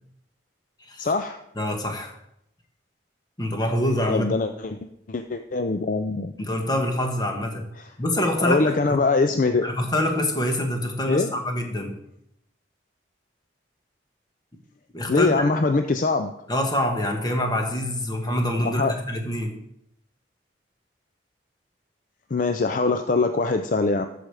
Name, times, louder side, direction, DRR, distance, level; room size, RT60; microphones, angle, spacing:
voice 1, 1.0-1.4 4.1-4.8 5.1-6.3 8.4-9.7 11.1-11.3 15.1-16.3 18.6-18.9 22.3-24.1, left 3 dB, 45° left, 7 dB, 0.4 m, -22 dB
voice 2, 1.5-2.2 3.4-4.3 6.4-7.7 8.0-9.0 9.6-12.0 14.9-15.5 16.5-19.6, left 1 dB, 20° left, 3 dB, 1.3 m, -25 dB
13.0 x 5.0 x 4.8 m, 0.77 s
head